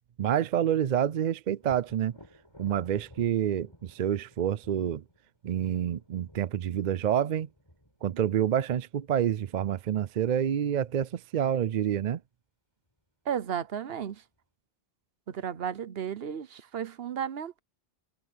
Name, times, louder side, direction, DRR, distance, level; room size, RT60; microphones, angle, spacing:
voice 1, 0.2-2.2 2.6-5.0 5.4-7.5 8.0-12.2, right 10 dB, 55° right, 0.6 m, -28 dB
Thunder, 1.6-9.3 12.9-13.0 13.5-14.4, equal, 25° left, 7.7 m, -56 dB
voice 2, 13.3-14.2 15.3-17.6, right 8 dB, 70° right, 1.0 m, -34 dB
omnidirectional pair, 1.1 m